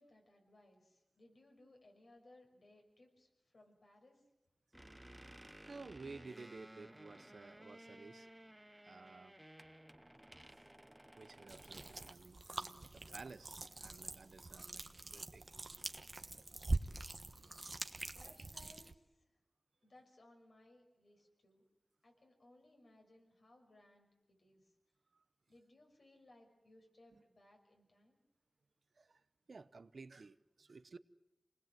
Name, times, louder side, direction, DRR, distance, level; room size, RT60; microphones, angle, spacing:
voice 1, 0.0-4.2 18.1-19.3 19.8-21.6 22.0-24.7 25.5-28.2, left 1 dB, 75° left, 1 dB, 6.1 m, -65 dB
sound 1, 4.7-12.1, right 1 dB, 15° right, 0.8 m, -57 dB
voice 2, 5.6-8.3 8.8-9.3 11.1-15.6 18.4-18.5 25.1-25.2 27.1-27.2 29.0-29.2 29.5-31.0, right 4 dB, 80° right, 14 dB, 0.8 m, -54 dB
sound 2, 11.5-18.9, right 2 dB, 50° right, 1.2 m, -44 dB
27.5 x 20.0 x 7.8 m, 0.94 s
wide cardioid pair, 55°, 0 cm